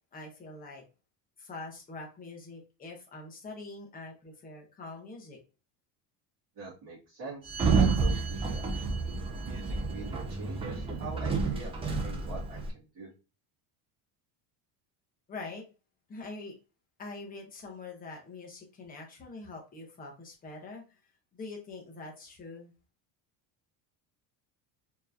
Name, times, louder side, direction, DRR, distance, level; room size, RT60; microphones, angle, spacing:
voice 1, 0.1-0.8 1.4-5.4 15.3-15.6 16.1-16.5 17.0-20.8 21.3-22.7, left 3 dB, 20° left, 0 dB, 1.0 m, -44 dB
voice 2, 6.6-8.9 9.4-11.8 12.0-13.1, right 3 dB, 35° right, -9 dB, 1.8 m, -44 dB
Sliding door, 7.5-12.7, right 4 dB, 15° right, 0.5 m, -29 dB
4.4 x 3.0 x 2.6 m, 0.30 s
cardioid pair, 165°, 43 cm